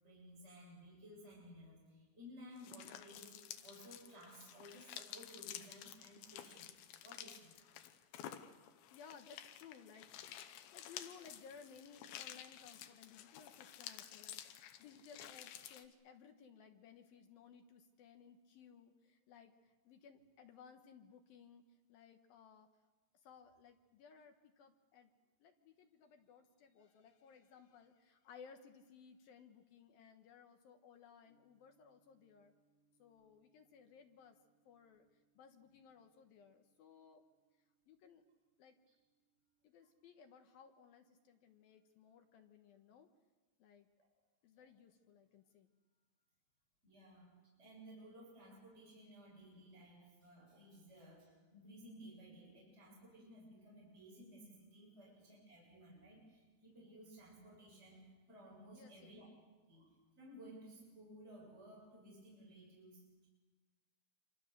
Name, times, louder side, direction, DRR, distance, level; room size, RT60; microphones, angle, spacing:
voice 1, 0.0-3.3 3.6-6.7 7.0-7.5 44.0-44.1 44.6-44.7 46.8-59.3 59.6-63.3, equal, 15° right, -3 dB, 7.6 m, -57 dB
sound 1, 2.6-15.9, left 11 dB, 90° left, 3.4 m, -52 dB
voice 2, 8.9-10.1 10.7-22.7 23.1-25.1 25.4-32.5 33.0-34.4 34.6-35.1 35.3-37.2 37.9-38.2 38.6-38.8 39.6-43.1 43.6-43.9 44.4-45.7 58.7-59.1, left 6 dB, 70° left, 6 dB, 2.7 m, -60 dB
sound 2, 31.3-42.6, right 3 dB, 90° right, 6.5 m, -83 dB
27.0 x 26.0 x 6.7 m, 1.3 s
omnidirectional pair, 5.0 m